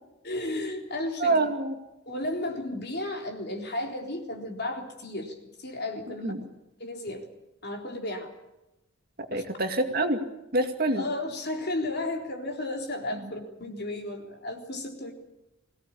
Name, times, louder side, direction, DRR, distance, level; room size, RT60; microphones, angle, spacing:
voice 1, 0.2-1.5 2.1-6.3 6.8-7.2 7.6-8.3 9.3-9.4 10.9-15.1, left 1 dB, 50° left, 2 dB, 3.8 m, -33 dB
voice 2, 1.2-1.7 6.2-6.4 9.3-10.2 10.5-11.0 13.1-13.3, right 2 dB, 45° right, 5 dB, 2.4 m, -26 dB
23.0 x 17.5 x 8.5 m, 0.97 s
head